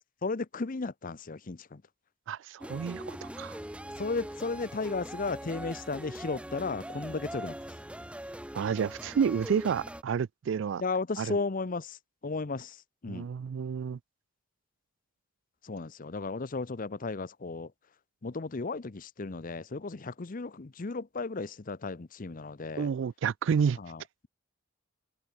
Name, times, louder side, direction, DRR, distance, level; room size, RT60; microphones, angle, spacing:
voice 1, 0.2-1.8 4.0-7.6 10.8-12.0 12.2-13.3 15.6-17.7 18.2-22.9 23.8-24.3, left 3 dB, 40° left, 0.7 m, -35 dB
voice 2, 2.3-3.6 8.5-10.8 11.2-11.4 13.1-14.0 22.8-23.8, right 7 dB, 65° right, 0.3 m, -30 dB
sound 1, 2.6-10.0, right 1 dB, 5° right, 1.6 m, -42 dB
head